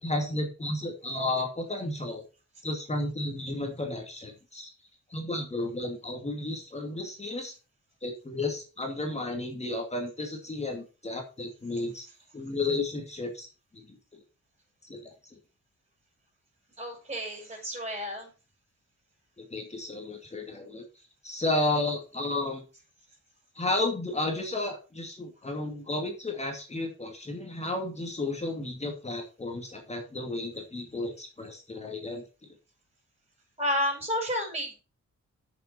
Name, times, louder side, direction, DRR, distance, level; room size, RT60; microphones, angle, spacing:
voice 1, 0.0-2.2 2.6-4.7 5.1-7.5 8.0-12.0 12.3-13.5 13.9-14.0 14.8-15.3 19.4-20.8 21.2-22.6 23.5-32.2, left 2 dB, 20° left, 3 dB, 2.5 m, -32 dB
voice 2, 16.8-18.3 33.6-34.7, left 1 dB, 20° right, 2 dB, 6.1 m, -31 dB
8.8 x 6.9 x 6.0 m, 0.32 s
wide cardioid pair, 135°, 30 cm